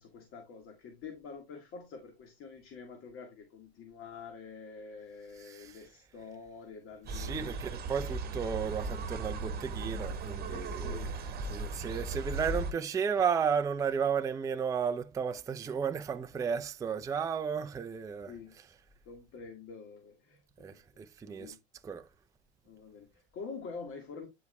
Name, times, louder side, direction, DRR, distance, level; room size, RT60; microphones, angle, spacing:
voice 1, 0.0-7.7 10.5-11.2 17.1-17.3 18.3-18.6 19.1-20.8 21.3-21.6 22.6-24.3, left 5 dB, 40° left, 2.0 m, -47 dB
voice 2, 5.4-5.9 7.1-18.3 20.6-21.6 21.8-22.1, right 7 dB, 10° right, 0.5 m, -33 dB
sound 1, 7.1-12.7, right 3 dB, 30° right, 1.6 m, -37 dB
10.5 x 4.9 x 2.3 m
hypercardioid pair, 95°, 34 cm